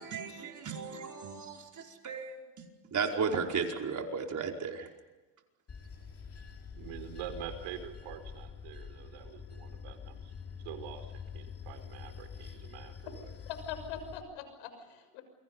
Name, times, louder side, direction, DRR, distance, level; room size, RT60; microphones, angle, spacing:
voice 1, 0.0-2.6 2.9-4.9, right 5 dB, 35° right, 2 dB, 5.0 m, -35 dB
Bell / Train, 5.7-14.2, left 6 dB, 30° left, 3.9 m, -46 dB
voice 2, 6.8-10.3 10.6-11.1 11.3-13.3, right 9 dB, 70° right, 7 dB, 5.3 m, -45 dB
voice 3, 13.5-15.2, left 7 dB, 75° left, 9 dB, 6.5 m, -42 dB
29.5 x 23.5 x 5.6 m, 1.2 s
supercardioid pair, 100°, 49 cm